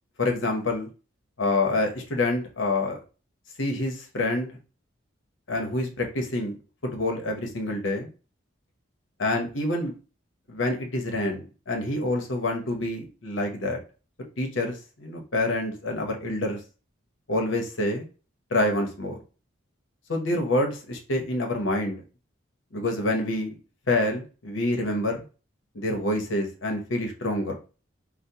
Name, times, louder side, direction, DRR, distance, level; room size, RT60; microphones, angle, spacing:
voice 1, 0.2-0.9 1.4-3.0 3.6-4.6 5.5-6.6 6.8-8.1 9.2-9.9 10.5-13.8 14.4-16.6 17.3-18.1 18.5-19.2 20.1-22.0 22.7-23.6 23.9-25.2 25.7-27.6, left 2 dB, 70° left, 3 dB, 0.9 m, -27 dB
4.9 x 2.0 x 2.8 m, 0.34 s
head